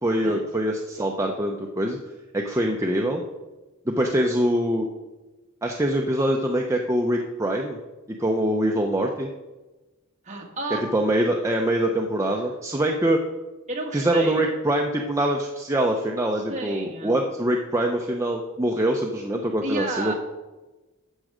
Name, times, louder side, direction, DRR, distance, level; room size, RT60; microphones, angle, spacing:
voice 1, 0.0-2.0 2.3-3.2 3.9-4.9 5.6-7.8 8.1-9.3 10.9-13.2 13.9-20.1, right 1 dB, 15° right, 1 dB, 0.7 m, -24 dB
voice 2, 10.2-10.8 13.7-14.4 16.5-17.2 19.6-20.1, right 2 dB, 35° right, 0 dB, 2.0 m, -31 dB
12.5 x 7.5 x 5.0 m, 1.1 s
head